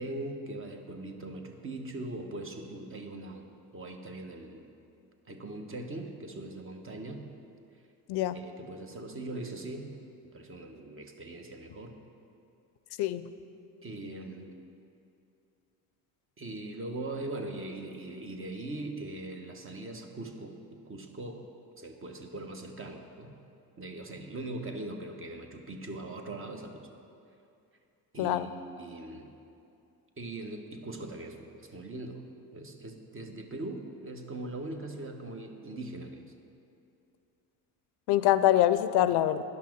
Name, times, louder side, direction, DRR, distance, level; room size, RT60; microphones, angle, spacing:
voice 1, 0.0-3.5 3.7-4.7 5.3-7.3 8.3-9.9 10.2-12.0 13.8-14.5 16.4-21.5 21.8-23.3 23.8-26.9 28.1-29.3 30.2-32.2 32.5-36.3, right 2 dB, 30° right, 4 dB, 1.1 m, -40 dB
voice 2, 28.2-28.5 38.1-39.4, left 13 dB, 75° left, 13 dB, 0.5 m, -24 dB
11.0 x 5.8 x 6.0 m, 2.6 s
cardioid pair, 90°, 40 cm